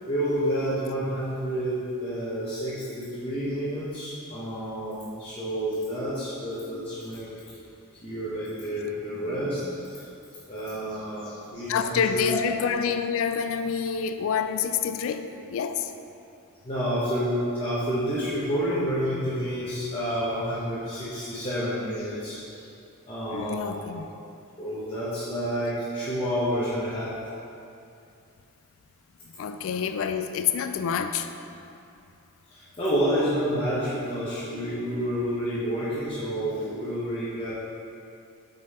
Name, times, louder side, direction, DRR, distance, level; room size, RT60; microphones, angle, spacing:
voice 1, 0.1-7.4 8.0-10.1 10.5-12.4 16.6-22.7 23.0-23.9 24.6-27.2 29.7-29.8 32.5-37.5, equal, 25° left, -10 dB, 1.0 m, -29 dB
voice 2, 11.7-15.9 23.3-24.1 29.4-31.3, left 7 dB, 60° left, 9 dB, 0.3 m, -27 dB
5.3 x 5.2 x 4.2 m, 2.6 s
head